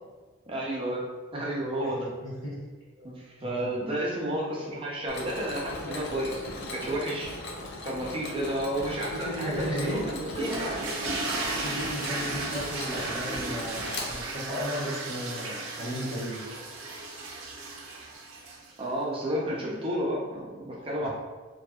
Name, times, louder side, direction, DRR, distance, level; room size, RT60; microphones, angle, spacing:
voice 1, 0.5-1.0 1.3-2.1 3.0-7.3 7.8-10.9 12.9-13.0 18.8-21.1, right 1 dB, 25° right, -4 dB, 0.5 m, -31 dB
voice 2, 2.2-2.6 3.4-3.8 5.8-6.1 9.1-10.1 11.6-16.5 21.0-21.1, equal, 85° left, -9 dB, 1.4 m, -35 dB
Mechanisms, 5.1-14.6, left 2 dB, 55° left, 0.4 m, -39 dB
sound 1, 10.3-18.8, right 3 dB, 85° right, 0.4 m, -35 dB
2.6 x 2.5 x 2.3 m, 1.3 s
head